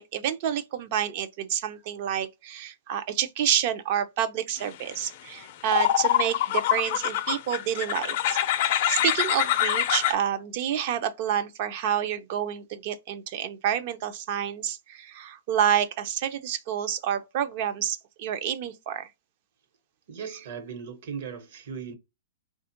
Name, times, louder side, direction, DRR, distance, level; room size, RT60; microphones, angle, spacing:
voice 1, 0.0-19.1, right 9 dB, 45° right, 0.5 m, -29 dB
sound 1, 5.1-5.2 5.7-10.1, left 12 dB, 45° left, 0.4 m, -25 dB
voice 2, 20.1-21.9, right 6 dB, 60° right, 1.1 m, -37 dB
3.6 x 2.3 x 2.8 m
hypercardioid pair, 150°, 0 cm